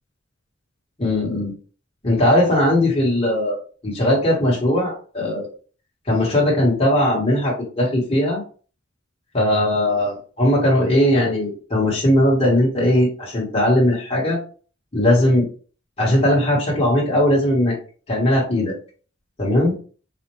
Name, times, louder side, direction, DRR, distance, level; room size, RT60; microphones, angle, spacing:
voice 1, 1.0-1.5 2.0-3.6 3.8-5.5 6.1-8.4 9.3-14.4 14.9-15.5 16.0-17.7 18.1-18.7 19.4-19.7, left 1 dB, 30° left, -4 dB, 1.2 m, -19 dB
4.2 x 2.4 x 3.0 m, 0.40 s
head